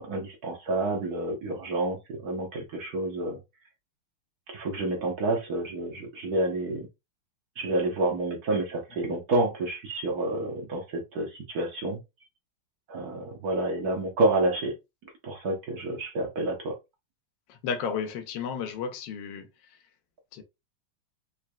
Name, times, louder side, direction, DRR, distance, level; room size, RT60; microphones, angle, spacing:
voice 1, 0.0-3.4 4.5-6.9 7.6-12.0 12.9-14.8 15.2-16.8, right 2 dB, 55° right, 1.3 m, -29 dB
voice 2, 17.5-19.5 20.3-20.4, left 6 dB, 70° left, 1.3 m, -33 dB
4.1 x 3.2 x 2.3 m
omnidirectional pair, 2.3 m